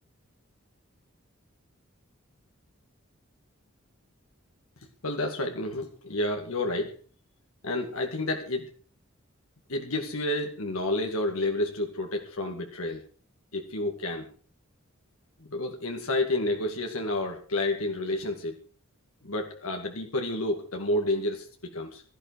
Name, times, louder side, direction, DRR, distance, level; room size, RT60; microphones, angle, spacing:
voice 1, 5.0-6.9 7.6-8.7 9.7-13.0 13.5-14.3 15.5-18.6 19.2-22.0, left 1 dB, 90° left, 3 dB, 2.4 m, -30 dB
17.0 x 13.5 x 4.8 m, 0.40 s
head